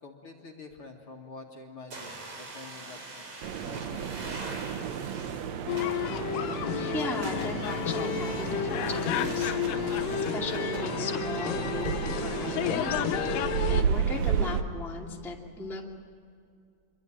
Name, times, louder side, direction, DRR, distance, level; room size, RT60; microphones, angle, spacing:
voice 1, 0.0-3.3 3.6-4.8, left 3 dB, 40° left, 0 dB, 2.5 m, -47 dB
sound 1, 1.9-10.9, right 3 dB, 45° right, 4.4 m, -44 dB
sound 2, 3.4-14.6, right 8 dB, 75° right, 1.6 m, -32 dB
sound 3, 5.7-13.8, left 11 dB, 75° left, 2.2 m, -31 dB
voice 2, 6.7-9.5 10.1-13.0 13.7-15.8, left 3 dB, ahead, -2 dB, 1.7 m, -37 dB
27.0 x 24.0 x 8.9 m, 2.3 s
omnidirectional pair, 4.4 m